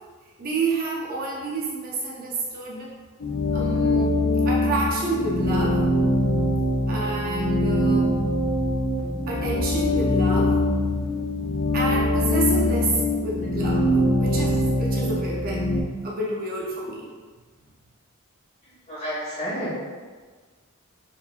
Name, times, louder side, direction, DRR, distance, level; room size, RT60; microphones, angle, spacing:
voice 1, 0.4-2.9 3.5-4.1 4.4-5.8 6.9-8.2 9.3-10.5 11.7-13.9 14.2-15.7 16.0-17.1, right 3 dB, 45° right, -4 dB, 0.5 m, -29 dB
sound 1, 3.2-15.8, left 1 dB, 65° left, 0.6 m, -23 dB
voice 2, 18.9-19.9, equal, 30° left, -9 dB, 1.4 m, -31 dB
4.2 x 2.9 x 2.4 m, 1.5 s
head